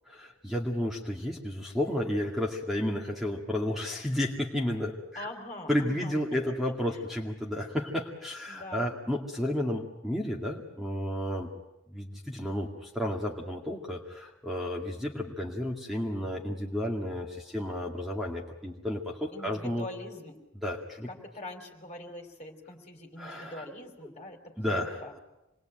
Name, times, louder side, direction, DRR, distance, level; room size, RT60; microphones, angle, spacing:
voice 1, 0.1-5.3 5.7-11.5 11.9-19.9 20.6-21.1 23.2-23.6 24.0-24.1 24.6-25.2, left 1 dB, ahead, -1 dB, 2.2 m, -32 dB
voice 2, 5.2-6.6 6.9-7.0 8.5-9.0 19.3-20.4 21.1-25.1, left 1 dB, 35° left, 3 dB, 3.5 m, -44 dB
27.0 x 21.0 x 9.0 m, 0.93 s
head